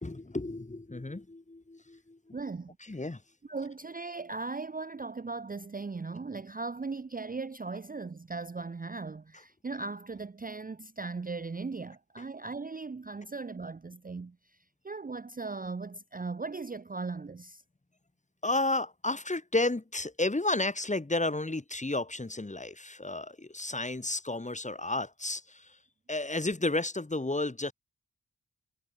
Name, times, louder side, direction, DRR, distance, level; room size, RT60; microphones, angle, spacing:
voice 1, 0.0-2.4 2.8-3.2 12.2-12.3 18.4-25.8 26.1-27.7, left 2 dB, 20° left, 1.8 m, -32 dB
voice 2, 2.3-2.8 3.5-14.4 14.8-17.6, right 4 dB, 25° right, 0.6 m, -38 dB
wide cardioid pair, 100°, 35 cm